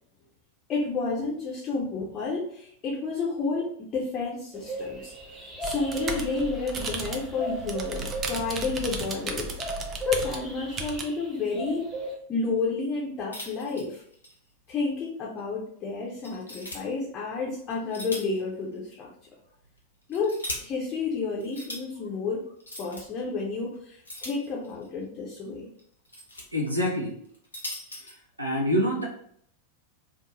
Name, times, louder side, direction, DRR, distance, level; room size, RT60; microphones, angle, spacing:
voice 1, 0.7-9.5 10.1-11.9 12.3-14.0 14.7-19.1 20.1-22.5 22.8-25.7, left 4 dB, 30° left, -4 dB, 0.6 m, -31 dB
sound 1, 4.5-12.1, right 1 dB, ahead, 0.9 m, -37 dB
sound 2, 5.6-11.0, right 4 dB, 25° right, 0.4 m, -35 dB
sound 3, 13.3-14.4 14.7-14.8 15.4-15.5 16.2-16.8 17.7-18.4 18.7-18.8 19.8-20.6 21.4-21.8 22.6-23.0 24.0-24.9 25.8-26.4 27.2-28.1, left 1 dB, 80° left, 0.7 m, -39 dB
voice 2, 26.5-27.2 28.0-29.0, equal, 85° right, -1 dB, 0.7 m, -26 dB
2.6 x 2.1 x 2.9 m, 0.65 s
figure-of-eight pair, 90°, 0 cm